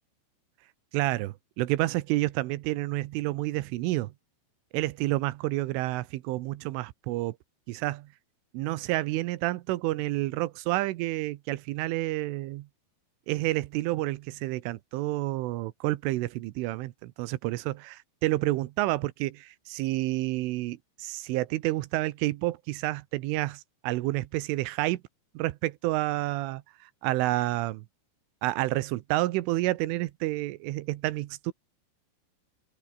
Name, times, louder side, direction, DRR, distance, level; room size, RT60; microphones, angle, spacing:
voice 1, 0.9-4.1 4.7-7.4 7.7-8.1 8.5-12.7 13.3-25.0 25.4-27.9 28.4-31.5, right 18 dB, 85° right, 3.5 m, -29 dB
open air
omnidirectional pair, 5.6 m